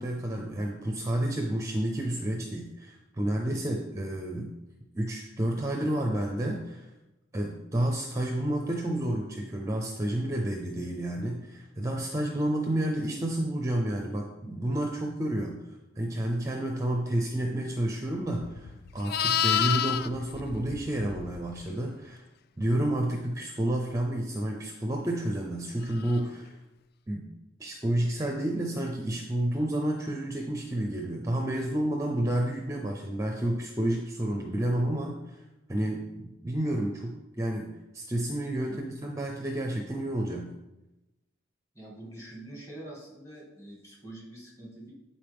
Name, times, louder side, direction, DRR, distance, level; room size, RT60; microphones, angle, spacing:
voice 1, 0.0-4.5 4.9-6.9 7.3-15.6 16.0-22.2 22.6-26.6 27.1-27.3 27.6-35.4 35.7-37.7 37.9-40.5, right 1 dB, 15° right, 1 dB, 0.6 m, -30 dB
Livestock farm animals working animals, 18.3-21.6 26.0-26.2, left 9 dB, 50° left, 0.3 m, -29 dB
voice 2, 41.7-44.9, right 1 dB, 15° left, -3 dB, 2.1 m, -45 dB
11.0 x 4.3 x 3.5 m, 0.99 s
head